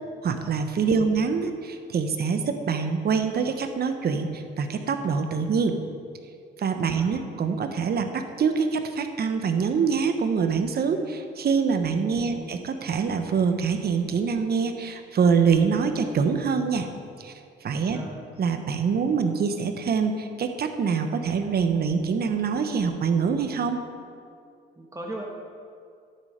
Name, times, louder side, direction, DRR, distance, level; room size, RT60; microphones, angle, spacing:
voice 1, 0.2-5.8 6.6-16.9 17.2-17.3 17.6-18.0 18.4-23.8, right 5 dB, 50° right, 7 dB, 1.1 m, -25 dB
voice 2, 17.9-18.2 24.8-25.4, right 1 dB, 15° right, -1 dB, 1.5 m, -37 dB
10.5 x 8.7 x 5.1 m, 2.3 s
cardioid pair, 90°, 20 cm